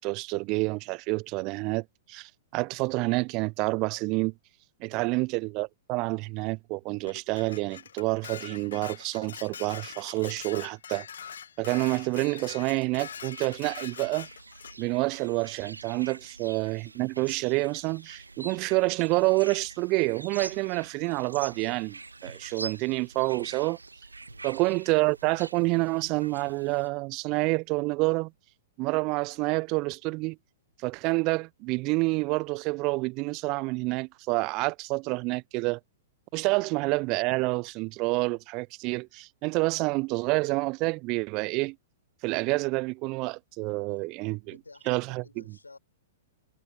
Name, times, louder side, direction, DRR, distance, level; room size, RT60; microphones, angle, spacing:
voice 1, 0.0-4.3 4.8-11.1 11.6-14.3 14.8-23.8 24.4-28.3 28.8-30.4 30.8-35.8 36.3-41.8 42.2-44.6 44.9-45.4, right 25 dB, 40° right, 0.4 m, -28 dB
voice 2, 4.9-5.2 16.1-16.3 24.3-24.5 36.5-36.7 43.9-44.0 44.4-45.8, left 3 dB, 85° left, 4.3 m, -53 dB
Dishes pots and pans, 7.1-14.8, left 8 dB, 65° left, 0.5 m, -43 dB
sound 1, 13.0-26.9, right 3 dB, 85° right, 2.0 m, -45 dB
figure-of-eight pair, 105°, 0 cm